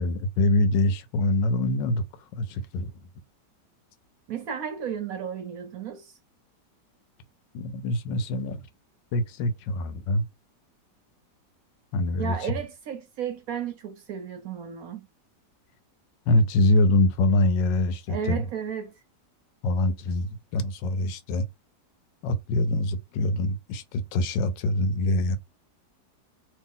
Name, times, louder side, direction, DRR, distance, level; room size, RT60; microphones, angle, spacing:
voice 1, 0.0-2.0 2.4-2.9 7.5-8.6 9.1-10.2 11.9-12.4 16.3-18.4 19.6-21.4 22.2-25.4, left 2 dB, 85° left, 1.4 m, -24 dB
voice 2, 4.3-6.2 12.2-15.1 18.1-19.0, right 8 dB, 65° right, 1.0 m, -33 dB
3.1 x 2.8 x 3.6 m
omnidirectional pair, 1.9 m